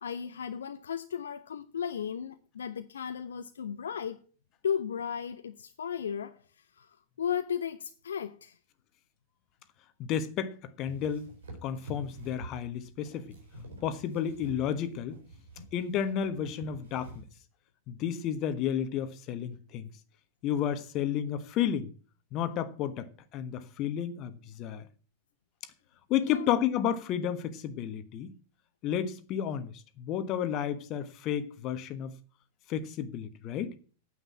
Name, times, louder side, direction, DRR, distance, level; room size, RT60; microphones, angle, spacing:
voice 1, 0.0-4.2 4.6-8.6 26.3-26.5, left 8 dB, 65° left, 0.7 m, -35 dB
voice 2, 10.0-11.3 11.6-13.3 13.8-15.2 15.7-17.3 17.9-19.9 20.4-21.9 22.3-24.9 26.1-28.3 28.8-32.2 32.7-33.7, left 9 dB, 35° left, 1.3 m, -32 dB
sound 1, 10.9-17.4, right 1 dB, 65° right, 4.0 m, -48 dB
9.2 x 8.0 x 8.4 m
figure-of-eight pair, 90°, 0 cm